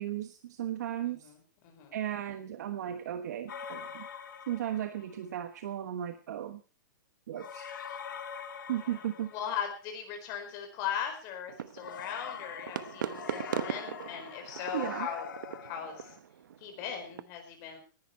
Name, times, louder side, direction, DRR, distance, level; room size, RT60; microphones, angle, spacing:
voice 1, 0.0-1.3 1.9-4.1 4.5-6.6 7.3-7.7 8.7-9.3 14.7-15.1, right 11 dB, 60° right, 8 dB, 1.2 m, -35 dB
voice 2, 1.0-1.4 1.6-2.0 8.9-9.0 9.3-15.3 15.6-16.1 16.6-17.8, left 8 dB, 30° left, 4 dB, 4.5 m, -38 dB
sound 1, 3.5-5.2 7.3-9.9 11.8-16.2, left 7 dB, 85° left, 2.2 m, -44 dB
sound 2, 11.5-17.2, right 9 dB, 85° right, 1.1 m, -40 dB
18.0 x 11.0 x 4.3 m, 0.35 s
hypercardioid pair, 165°, 10 cm